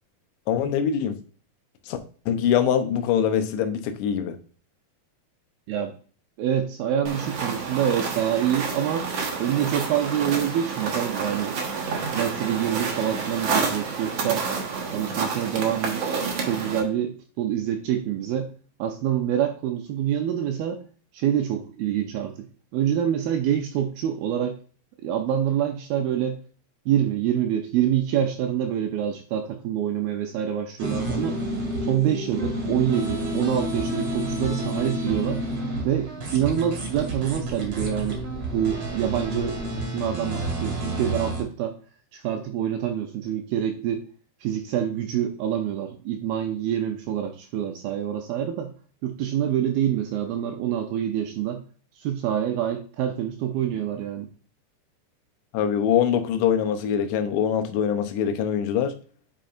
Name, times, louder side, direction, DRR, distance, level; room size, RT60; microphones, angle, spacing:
voice 1, 0.5-1.2 1.9-2.0 2.3-4.4 55.5-58.9, left 8 dB, 90° left, 3.1 m, -23 dB
voice 2, 6.4-9.1 9.4-11.6 12.1-14.4 14.9-16.0 16.5-18.5 18.8-20.8 21.1-22.5 22.7-24.5 25.0-26.4 26.9-31.4 31.9-35.4 35.8-38.2 38.5-41.8 42.1-44.1 44.4-48.7 49.0-51.6 52.0-54.3, right 10 dB, 85° right, 2.2 m, -26 dB
sound 1, 7.0-16.8, right 5 dB, 65° right, 1.6 m, -29 dB
sound 2, 30.8-41.4, right 1 dB, 40° right, 2.0 m, -30 dB
8.9 x 5.4 x 2.5 m
omnidirectional pair, 4.9 m